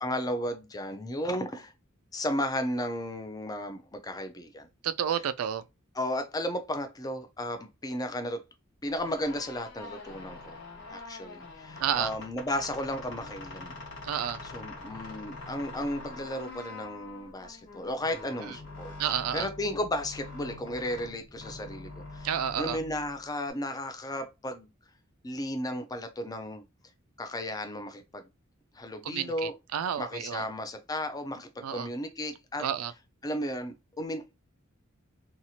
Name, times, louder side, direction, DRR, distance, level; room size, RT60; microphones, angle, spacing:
voice 1, 0.0-1.7 2.1-4.7 5.9-8.4 8.8-10.6 10.9-13.8 14.4-22.3 22.6-24.7 25.2-26.6 27.2-28.3 28.8-29.5 30.0-32.7 33.2-34.3, left 1 dB, 20° left, 0.4 m, -34 dB
voice 2, 4.8-5.6 11.8-12.1 14.0-14.4 18.4-18.5 19.0-19.5 22.2-22.8 29.0-30.5 31.6-31.9 32.6-32.9, right 9 dB, 90° right, 0.3 m, -30 dB
sound 1, 8.9-23.5, left 2 dB, 55° left, 1.1 m, -44 dB
2.9 x 2.4 x 2.7 m
head